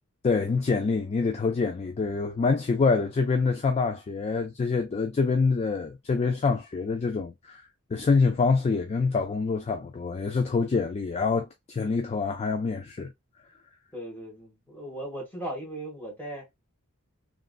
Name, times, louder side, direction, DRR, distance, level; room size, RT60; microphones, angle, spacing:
voice 1, 0.2-7.6 7.9-13.1, left 4 dB, 30° left, 0.3 m, -26 dB
voice 2, 13.9-16.5, right 1 dB, 10° left, 1.5 m, -37 dB
3.0 x 2.5 x 2.3 m
head